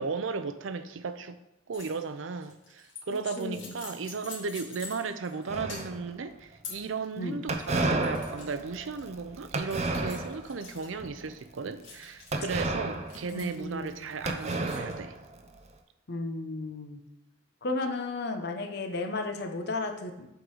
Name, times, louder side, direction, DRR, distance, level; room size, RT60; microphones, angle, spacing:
voice 1, 0.0-1.4 1.7-15.2, right 4 dB, 80° right, 0.5 m, -35 dB
sound 1, 1.7-2.0 2.4-5.4 5.7-6.1 6.6-6.9 7.4-8.5 9.0-9.1 9.7-10.9 11.8-12.6 13.1-13.7 14.3-14.9, left 4 dB, 75° left, 2.2 m, -46 dB
voice 2, 3.4-3.7 7.2-7.4 13.3-14.1 16.1-17.0 17.6-20.3, left 2 dB, 55° left, 0.8 m, -34 dB
sound 2, 5.5-6.3 7.5-10.6 11.0-11.3 12.3-13.9 14.3-15.6, right 2 dB, 35° right, 0.6 m, -32 dB
7.9 x 3.8 x 4.9 m
head